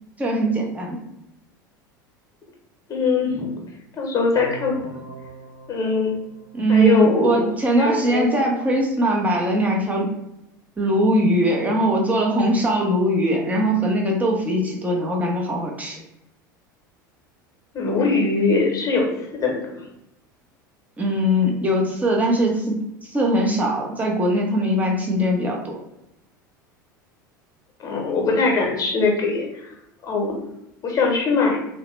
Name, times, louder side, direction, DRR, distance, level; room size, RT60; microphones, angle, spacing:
voice 1, 0.2-1.0 6.5-10.1 10.8-16.0 21.0-25.8, equal, 15° right, 0 dB, 0.7 m, -21 dB
voice 2, 2.9-3.5 4.0-4.8 5.7-6.2 6.7-7.5 7.7-8.3 17.7-19.8 27.8-29.7 30.0-30.3 30.8-31.6, left 4 dB, 30° left, 0 dB, 1.0 m, -21 dB
sound 1, 4.3-7.3, right 3 dB, 80° right, 1.0 m, -41 dB
2.8 x 2.1 x 3.0 m, 0.86 s
hypercardioid pair, 80°, 11 cm